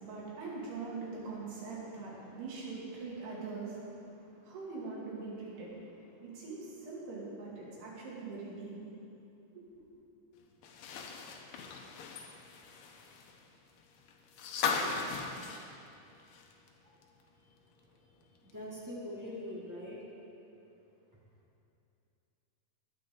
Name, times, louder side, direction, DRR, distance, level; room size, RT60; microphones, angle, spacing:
voice 1, 0.0-8.8 9.5-9.6, right 3 dB, 85° right, -5 dB, 4.7 m, -43 dB
sound 1, 10.6-16.7 17.0-17.1 18.5-18.6, left 5 dB, 80° left, 2.8 m, -38 dB
voice 2, 18.4-20.0, left 1 dB, 15° right, -6 dB, 0.6 m, -43 dB
21.0 x 9.2 x 3.9 m, 2.8 s
omnidirectional pair, 4.5 m